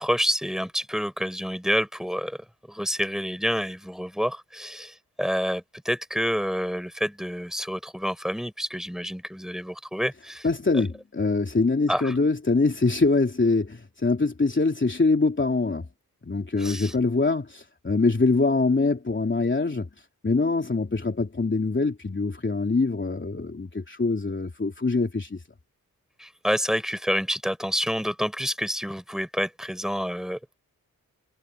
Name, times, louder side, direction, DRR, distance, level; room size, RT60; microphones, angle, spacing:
voice 1, 0.0-10.5 10.7-10.8 11.9-12.2 16.6-16.9 26.2-30.6, equal, ahead, 6.2 m, -28 dB
voice 2, 10.4-15.9 16.2-19.9 20.2-25.4, left 3 dB, 30° left, 3.1 m, -24 dB
cardioid pair, 65°, 36 cm